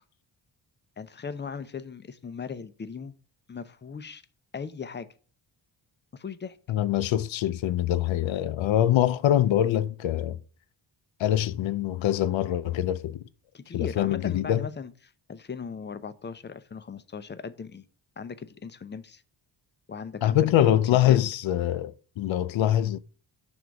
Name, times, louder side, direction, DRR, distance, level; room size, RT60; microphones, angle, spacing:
voice 1, 1.0-3.1 3.5-4.2 4.5-5.1 6.1-6.6 13.5-14.9 15.3-17.8 18.2-19.2 19.9-20.5 21.1-21.2, left 5 dB, 25° left, 0.5 m, -38 dB
voice 2, 6.7-10.4 11.2-13.2 13.7-14.6 20.2-23.0, left 12 dB, 80° left, 0.6 m, -24 dB
6.1 x 3.5 x 5.0 m
wide cardioid pair, 115°, 46 cm